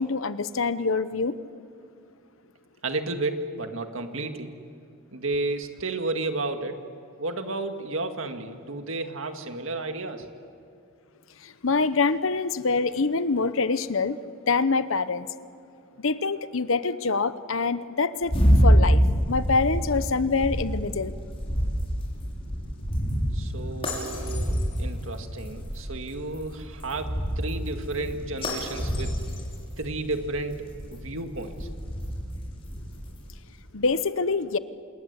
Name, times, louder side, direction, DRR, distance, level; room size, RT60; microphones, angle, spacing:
voice 1, 0.0-1.3 11.6-14.2 14.5-15.3 16.0-18.4 18.6-19.0 19.3-21.1 33.7-34.6, left 4 dB, 65° left, 13 dB, 0.9 m, -25 dB
voice 2, 2.8-4.6 5.1-6.9 7.2-10.3 23.3-29.2 29.8-31.7, right 2 dB, 65° right, 6 dB, 2.0 m, -32 dB
sound 1, 18.2-33.4, equal, 25° left, 5.9 m, -27 dB
27.5 x 21.0 x 8.2 m, 2.6 s
head